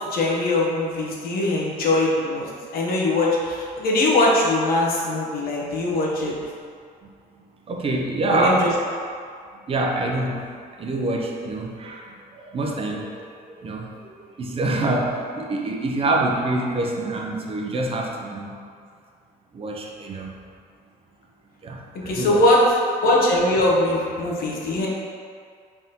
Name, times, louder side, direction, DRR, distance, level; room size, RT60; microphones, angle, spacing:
voice 1, 0.1-2.5 2.7-6.3 8.3-8.7 21.9-22.6 23.0-24.9, left 2 dB, 60° left, -3 dB, 0.8 m, -21 dB
voice 2, 7.7-8.7 9.7-10.5 10.8-13.2 13.5-18.5 19.5-20.3 21.6-22.4, right 2 dB, 35° right, -1 dB, 0.5 m, -26 dB
3.9 x 3.4 x 2.8 m, 2.2 s
cardioid pair, 110°, 17 cm